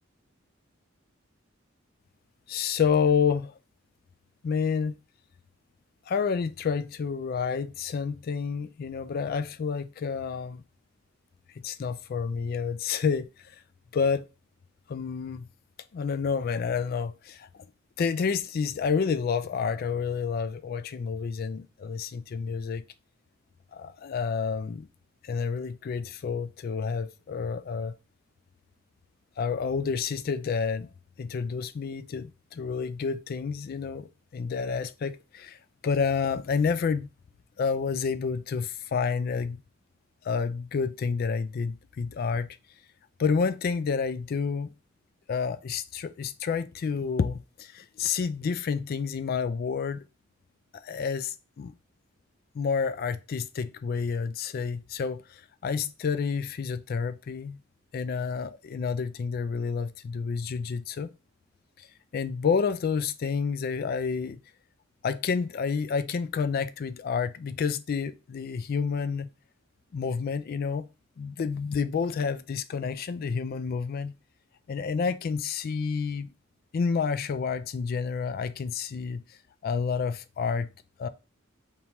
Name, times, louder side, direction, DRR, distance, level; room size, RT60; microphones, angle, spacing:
voice 1, 2.5-3.5 4.4-5.0 6.1-10.6 11.6-13.6 13.9-14.2 14.9-15.5 15.9-17.5 18.0-22.8 23.7-24.9 25.2-27.9 29.4-30.9 31.2-35.6 35.8-37.1 37.6-39.6 40.2-42.5 43.2-44.7 45.3-50.0 50.8-51.7 52.5-57.6 57.9-61.1 61.8-61.9 62.1-64.4 65.0-69.3 69.9-70.9 71.2-74.1 74.7-76.3 76.7-79.2 79.6-80.7 81.0-81.1, left 5 dB, 50° left, 0.3 m, -29 dB
4.2 x 3.5 x 2.9 m
head